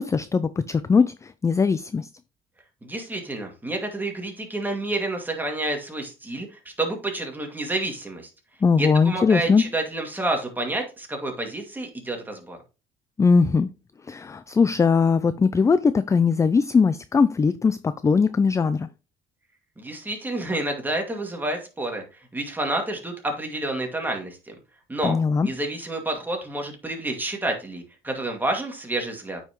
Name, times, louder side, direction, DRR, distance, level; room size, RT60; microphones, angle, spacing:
voice 1, 0.0-2.1 8.6-9.6 13.2-13.7 14.1-18.9 25.0-25.5, left 5 dB, 20° left, 0.3 m, -20 dB
voice 2, 2.8-6.5 6.8-8.3 8.8-12.6 19.8-22.0 22.3-24.5 24.9-25.2 25.4-29.4, right 2 dB, 10° right, 2.2 m, -29 dB
8.9 x 5.6 x 3.0 m
cardioid pair, 110°, 17 cm